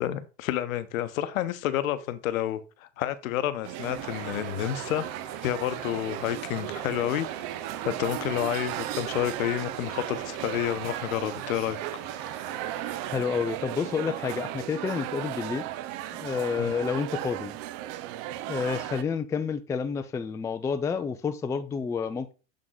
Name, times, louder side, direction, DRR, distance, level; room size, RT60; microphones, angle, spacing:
voice 1, 0.0-5.1 5.4-7.3 7.8-11.8 16.6-16.7, left 12 dB, 80° left, 0.8 m, -29 dB
sound 1, 3.6-19.0, right 13 dB, 55° right, 0.6 m, -36 dB
Truck, 3.8-13.2, right 7 dB, 75° right, 1.6 m, -43 dB
voice 2, 13.1-15.7 16.2-17.5 18.5-22.3, left 5 dB, 10° left, 0.3 m, -29 dB
7.7 x 3.7 x 3.8 m
hypercardioid pair, 100°, 40 cm